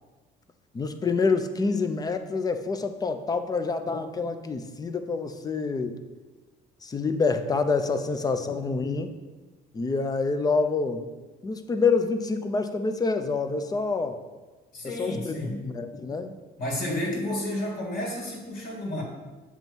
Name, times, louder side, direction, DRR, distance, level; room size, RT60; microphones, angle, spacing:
voice 1, 0.7-6.0 6.8-9.1 9.7-11.1 11.4-14.2 14.8-16.3, left 4 dB, 20° left, 9 dB, 0.5 m, -27 dB
voice 2, 14.7-15.6 16.6-19.0, left 1 dB, 60° left, -1 dB, 2.2 m, -31 dB
7.4 x 3.1 x 5.3 m, 1.2 s
cardioid pair, 110°, 17 cm